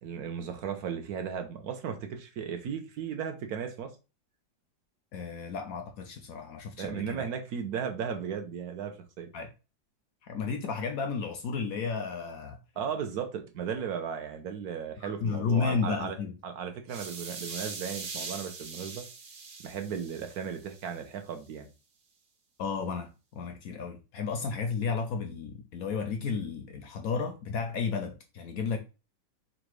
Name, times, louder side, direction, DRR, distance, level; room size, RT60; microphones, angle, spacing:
voice 1, 0.0-3.9 6.8-9.3 12.8-16.2 16.4-19.0 19.6-21.7, right 7 dB, 60° right, 1.1 m, -36 dB
voice 2, 5.1-7.3 9.3-9.5 10.2-12.6 15.0-16.3 22.6-28.8, left 5 dB, 70° left, 0.8 m, -33 dB
sound 1, 16.9-21.0, right 4 dB, 80° right, 1.8 m, -41 dB
4.0 x 2.4 x 4.6 m
omnidirectional pair, 2.1 m